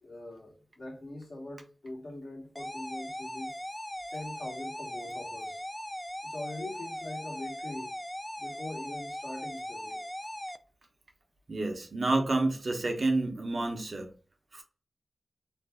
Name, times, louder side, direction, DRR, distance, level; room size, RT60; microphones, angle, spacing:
voice 1, 0.0-3.5 4.1-5.6 6.2-7.9 8.4-10.0, left 1 dB, 70° left, 0.9 m, -42 dB
sound 1, 2.6-10.6, left 1 dB, 15° left, 0.3 m, -39 dB
voice 2, 11.5-14.1 14.5-14.6, right 2 dB, 65° right, 0.7 m, -29 dB
2.5 x 2.1 x 3.3 m
cardioid pair, 40°, 0 cm